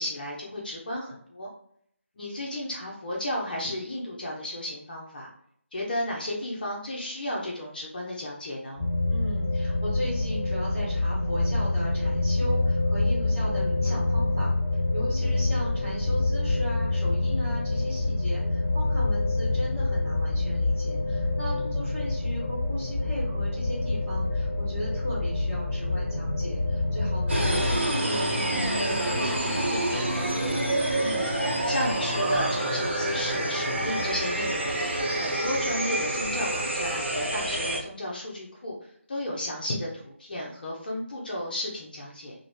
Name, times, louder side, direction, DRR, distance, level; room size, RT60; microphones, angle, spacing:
voice 1, 0.0-1.5 2.2-5.3 5.7-8.8 31.0-34.8 35.1-42.3, left 1 dB, 40° left, -3 dB, 0.5 m, -33 dB
sound 1, 8.8-27.7, left 2 dB, 10° left, 1.1 m, -26 dB
voice 2, 9.1-14.5 14.9-30.2, equal, 10° right, -12 dB, 1.4 m, -36 dB
sound 2, 27.3-37.8, right 1 dB, 55° right, 0.7 m, -27 dB
2.4 x 2.0 x 3.2 m, 0.67 s
figure-of-eight pair, 160°, 7 cm